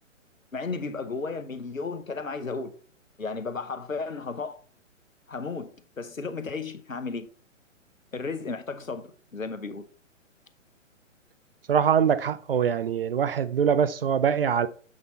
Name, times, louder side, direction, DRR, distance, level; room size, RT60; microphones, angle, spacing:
voice 1, 0.5-2.7 3.2-4.6 5.3-7.3 8.1-9.9, left 4 dB, 90° left, 0.9 m, -34 dB
voice 2, 11.7-14.7, right 7 dB, 50° right, 0.6 m, -23 dB
7.4 x 4.1 x 4.1 m
figure-of-eight pair, 130°, 39 cm